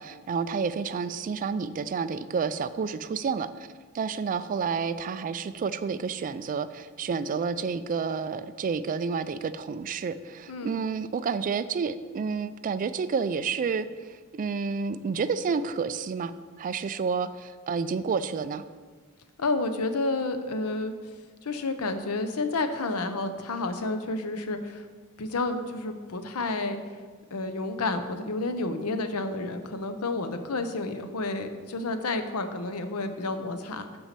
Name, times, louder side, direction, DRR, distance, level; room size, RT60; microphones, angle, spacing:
voice 1, 0.0-3.7 3.9-16.3 16.6-18.6, right 5 dB, 35° right, 13 dB, 0.3 m, -30 dB
voice 2, 19.4-20.9 21.4-24.9 25.2-26.8 27.3-34.0, left 2 dB, 80° left, 8 dB, 0.7 m, -30 dB
5.9 x 5.4 x 6.7 m, 1.5 s
head